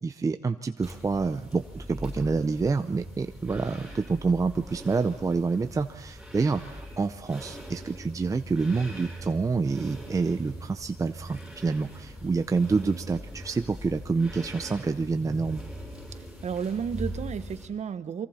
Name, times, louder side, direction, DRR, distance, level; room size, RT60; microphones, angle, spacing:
voice 1, 0.0-15.6, right 4 dB, 20° right, 9 dB, 0.6 m, -27 dB
sound 1, 0.8-17.6, equal, ahead, 7.8 m, -41 dB
voice 2, 16.1-18.3, right 7 dB, 40° right, 12 dB, 1.1 m, -32 dB
29.0 x 23.5 x 4.3 m, 1.0 s
cardioid pair, 110°, 17 cm